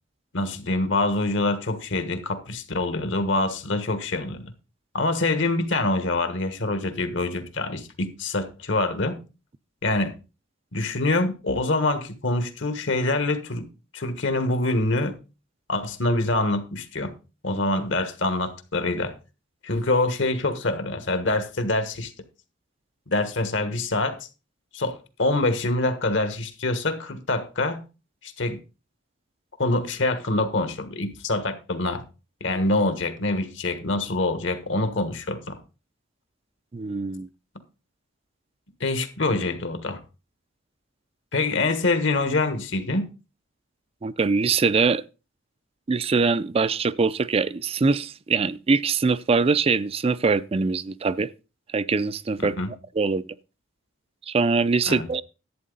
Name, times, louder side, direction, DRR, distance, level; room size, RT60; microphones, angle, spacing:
voice 1, 0.3-4.5 4.9-9.1 9.8-10.1 10.7-13.7 13.9-15.2 15.7-17.1 17.4-19.1 19.6-22.1 23.1-24.2 24.7-27.8 28.2-28.6 29.6-32.0 32.4-35.4 38.8-40.0 41.3-43.1 52.6-52.7 54.9-55.1, left 2 dB, 65° left, 1.4 m, -25 dB
voice 2, 36.7-37.3 44.0-45.0 45.9-51.3 51.7-52.5 53.0-53.3 54.3-55.2, right 4 dB, 30° right, 0.4 m, -23 dB
11.0 x 8.5 x 3.9 m
head